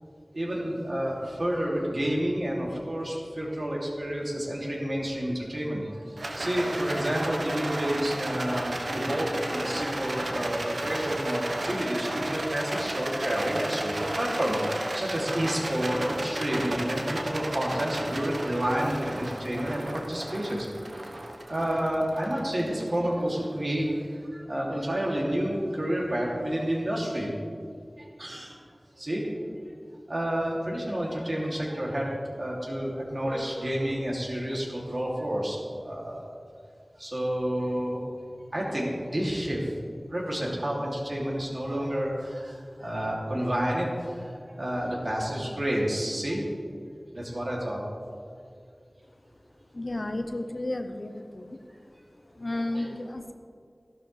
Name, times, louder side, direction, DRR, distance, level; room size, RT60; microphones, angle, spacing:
voice 1, 0.3-21.0 21.4-27.3 28.0-28.6 29.0-29.2 29.5-29.6 30.1-36.3 37.0-38.0 38.5-39.7 40.1-46.4 47.1-47.8 52.7-52.9, equal, 55° right, -4 dB, 2.8 m, -30 dB
Rattle, 6.2-23.5, right 1 dB, 85° right, 1.2 m, -33 dB
voice 2, 49.7-51.6 52.3-53.3, left 1 dB, 60° left, 6 dB, 0.8 m, -33 dB
14.5 x 12.0 x 3.4 m, 2.2 s
wide cardioid pair, 60°, 0 cm